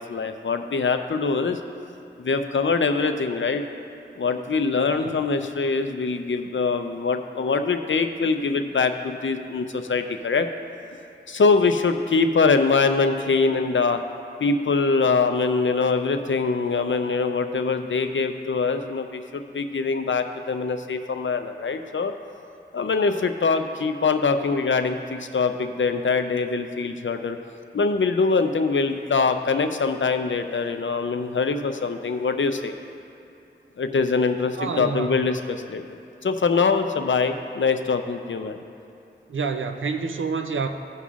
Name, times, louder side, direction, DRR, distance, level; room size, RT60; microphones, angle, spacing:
voice 1, 0.0-1.6 2.2-3.6 4.2-10.5 11.3-14.0 14.4-22.1 22.7-27.4 27.7-32.7 33.8-35.8 36.2-38.6, left 4 dB, 75° left, 7 dB, 0.5 m, -23 dB
voice 2, 34.6-35.1 39.3-40.7, right 4 dB, 90° right, 6 dB, 0.5 m, -27 dB
16.0 x 5.4 x 2.4 m, 2.7 s
wide cardioid pair, 40°, 20 cm